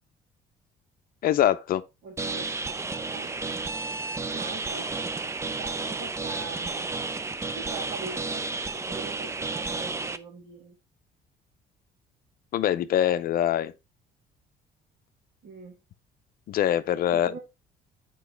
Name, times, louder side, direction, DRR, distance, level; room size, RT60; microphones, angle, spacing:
voice 1, 1.2-1.8 12.5-13.7 16.5-17.3, left 11 dB, 60° left, 0.6 m, -23 dB
voice 2, 2.0-3.8 4.3-4.9 5.6-6.9 7.5-10.8 15.4-15.8 17.1-17.4, right 4 dB, 65° right, 3.1 m, -43 dB
sound 1, 2.2-10.2, right 3 dB, 15° right, 0.5 m, -32 dB
8.2 x 4.7 x 3.3 m
cardioid pair, 110°, 17 cm